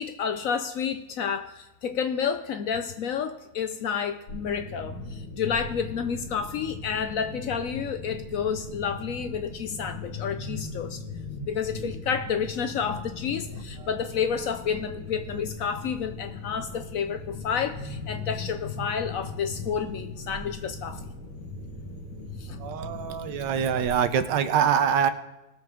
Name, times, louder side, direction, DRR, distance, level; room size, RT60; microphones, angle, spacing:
voice 1, 0.0-11.0 11.5-21.0 22.4-22.6, left 7 dB, 65° left, 0.9 m, -30 dB
sound 1, 4.3-23.9, left 3 dB, 85° left, 2.2 m, -39 dB
voice 2, 22.6-25.1, right 8 dB, 85° right, 1.4 m, -24 dB
19.0 x 7.5 x 3.6 m
omnidirectional pair, 1.8 m